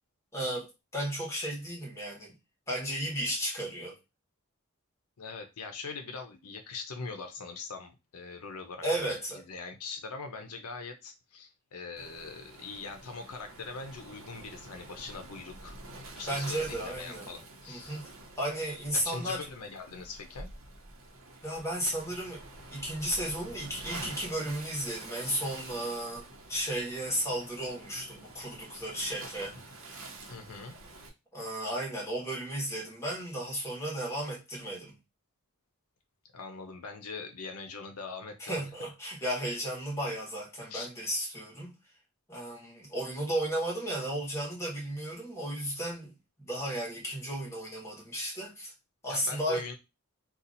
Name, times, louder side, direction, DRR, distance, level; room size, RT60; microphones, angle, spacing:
voice 1, 0.3-2.3 2.7-4.0 8.8-9.4 16.3-17.3 17.7-19.4 21.4-22.5 22.7-29.6 31.3-34.9 38.4-41.7 42.3-46.1 46.4-48.7 49.0-49.6, right 1 dB, 10° left, 1.3 m, -34 dB
voice 2, 5.2-15.8 16.2-18.0 18.9-20.5 30.3-30.8 36.3-38.6 40.7-40.9 49.1-49.7, left 4 dB, 90° left, 0.7 m, -42 dB
Waves surf, 12.0-31.1, right 2 dB, 65° right, 0.9 m, -47 dB
2.8 x 2.4 x 3.9 m
head